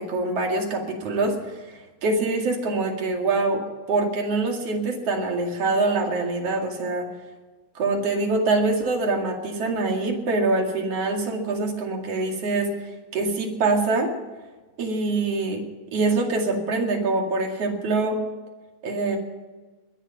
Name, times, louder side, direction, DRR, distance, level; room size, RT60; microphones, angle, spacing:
voice 1, 0.0-3.6 3.9-7.1 7.7-12.7 13.1-14.1 14.8-15.6 15.9-18.2 18.8-19.2, right 3 dB, 50° right, 2 dB, 3.2 m, -24 dB
20.5 x 11.0 x 5.8 m, 1.3 s
omnidirectional pair, 3.6 m